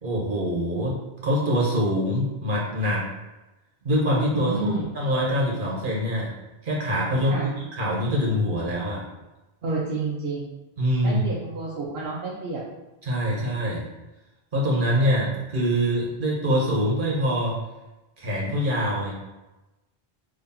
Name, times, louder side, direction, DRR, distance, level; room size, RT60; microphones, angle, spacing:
voice 1, 0.0-0.9 1.2-3.0 3.8-6.3 6.6-7.4 7.7-9.0 10.8-11.2 13.0-13.8 14.5-17.6 18.2-19.1, equal, 55° right, -4 dB, 1.4 m, -24 dB
voice 2, 4.3-4.9 7.3-7.5 9.6-10.6 11.0-12.6, right 2 dB, 70° right, -6 dB, 1.0 m, -30 dB
3.7 x 3.1 x 4.2 m, 1.0 s
omnidirectional pair, 1.1 m